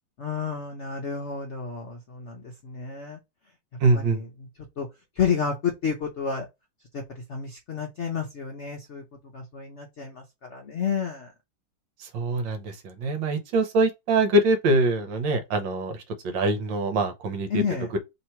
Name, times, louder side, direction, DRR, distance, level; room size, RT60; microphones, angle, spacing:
voice 1, 0.2-3.2 4.8-4.9 5.2-6.4 6.9-7.0 7.3-9.0 9.3-10.2 10.5-11.3 17.5-17.9, left 6 dB, 65° left, 0.7 m, -30 dB
voice 2, 3.8-4.2 12.0-17.6 17.9-18.0, right 2 dB, 70° right, 1.5 m, -24 dB
3.2 x 2.9 x 4.4 m
omnidirectional pair, 2.2 m